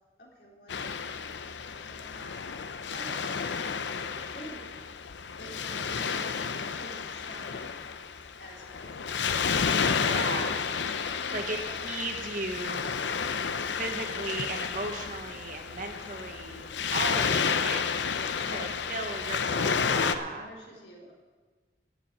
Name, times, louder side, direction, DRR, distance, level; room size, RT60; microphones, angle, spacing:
voice 1, 0.2-1.0 1.4-2.4 2.9-3.3 4.2-4.9 5.4-6.4 6.8-7.7 8.4-9.1 11.2-11.8 13.7-13.9 18.4-19.4 19.7-21.1, equal, 65° left, -3 dB, 3.6 m, -49 dB
Waves surf, 0.7-20.1, left 6 dB, 85° left, 0.7 m, -31 dB
voice 2, 10.0-10.6 11.3-12.9 13.5-17.9 18.5-20.5, right 3 dB, 45° right, 4 dB, 1.3 m, -36 dB
12.0 x 7.1 x 8.9 m, 1.4 s
head